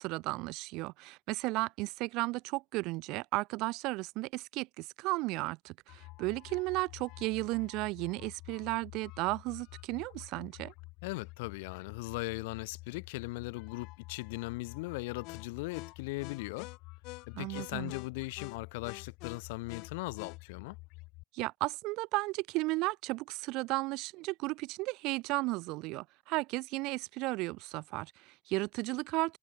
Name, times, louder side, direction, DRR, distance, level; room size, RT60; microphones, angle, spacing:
voice 1, 0.0-10.7 17.3-17.9 21.3-29.4, right 22 dB, 60° right, 0.7 m, -34 dB
sound 1, 5.9-21.2, left 23 dB, 60° left, 2.3 m, -48 dB
voice 2, 11.0-16.7 17.3-20.8, left 24 dB, 80° left, 2.6 m, -39 dB
supercardioid pair, 125°, 0 cm